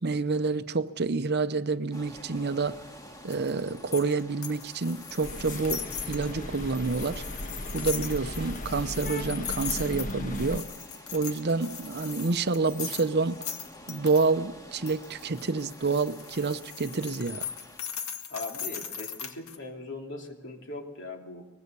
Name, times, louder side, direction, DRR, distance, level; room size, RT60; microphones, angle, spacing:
voice 1, 0.0-2.8 3.2-7.2 7.7-10.7 11.1-13.4 13.9-17.5, right 4 dB, 50° right, 11 dB, 0.7 m, -28 dB
sound 1, 1.9-17.8, equal, 15° left, 2.0 m, -49 dB
sound 2, 3.3-14.3 14.9-19.6, left 8 dB, 75° left, 1.9 m, -39 dB
sound 3, 5.2-10.6, left 1 dB, 35° left, 1.2 m, -37 dB
voice 2, 18.3-21.5, left 2 dB, 60° left, 2 dB, 3.0 m, -40 dB
24.0 x 20.5 x 6.8 m, 1.0 s
head